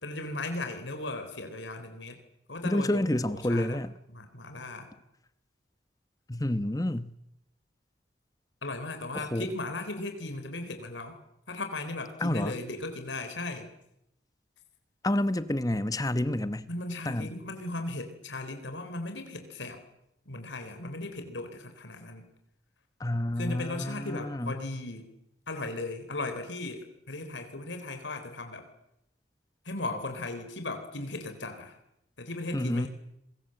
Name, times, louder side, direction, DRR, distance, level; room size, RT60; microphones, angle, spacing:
voice 1, 0.0-2.2 2.5-3.8 4.1-4.9 8.6-11.2 11.5-13.7 16.7-19.8 20.3-22.3 23.4-25.1 25.5-28.7 29.6-31.8 32.2-32.9, left 2 dB, 85° left, 4.0 m, -37 dB
voice 2, 2.6-3.9 6.3-7.1 9.1-9.5 12.2-12.5 15.0-16.7 17.0-17.3 23.0-24.6 32.5-32.9, left 1 dB, 20° left, 1.0 m, -29 dB
27.5 x 22.0 x 7.9 m
head